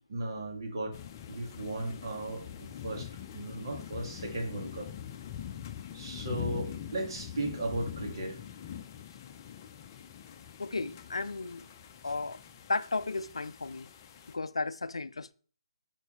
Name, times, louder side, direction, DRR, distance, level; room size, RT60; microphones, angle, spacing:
voice 1, 0.1-0.9 1.3-3.1 3.3-4.9 5.9-8.4, right 1 dB, 50° right, 2.6 m, -36 dB
sound 1, 0.9-14.3, left 9 dB, 30° left, 0.7 m, -44 dB
voice 2, 10.6-11.7 12.0-12.4 12.7-13.9 14.3-15.3, left 3 dB, 70° left, 0.5 m, -34 dB
10.5 x 4.5 x 3.3 m
figure-of-eight pair, 145°, 3 cm